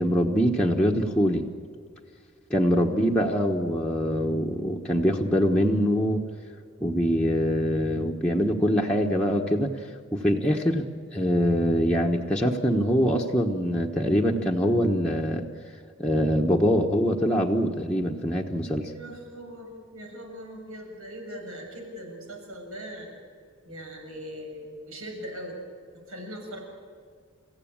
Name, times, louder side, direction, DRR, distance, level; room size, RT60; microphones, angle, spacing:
voice 1, 0.0-1.4 2.5-6.2 6.8-9.7 10.1-10.9 11.1-15.4 16.0-18.9, equal, 5° left, -2 dB, 1.2 m, -24 dB
voice 2, 2.8-3.2 18.9-23.1 23.6-25.6 26.1-26.6, equal, 80° right, 1 dB, 7.0 m, -40 dB
29.0 x 15.5 x 8.8 m, 2.1 s
head